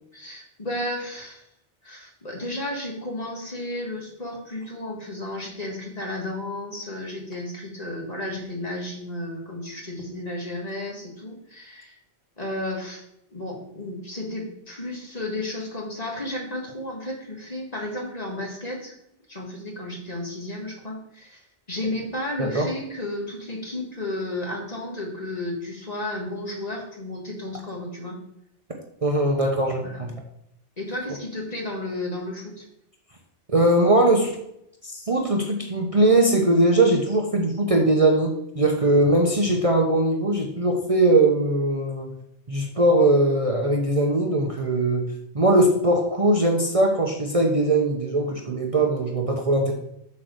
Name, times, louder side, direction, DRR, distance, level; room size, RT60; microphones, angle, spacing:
voice 1, 0.1-1.4 1.8-12.0 12.4-13.0 13.3-18.9 19.3-28.2 29.8-30.0 30.8-32.6, left 1 dB, 35° left, -1 dB, 2.0 m, -33 dB
voice 2, 29.0-30.1 33.5-34.4 34.9-42.1 42.5-45.0 45.3-49.7, right 1 dB, 30° right, 1 dB, 0.9 m, -20 dB
7.5 x 4.5 x 6.5 m, 0.77 s
omnidirectional pair, 1.2 m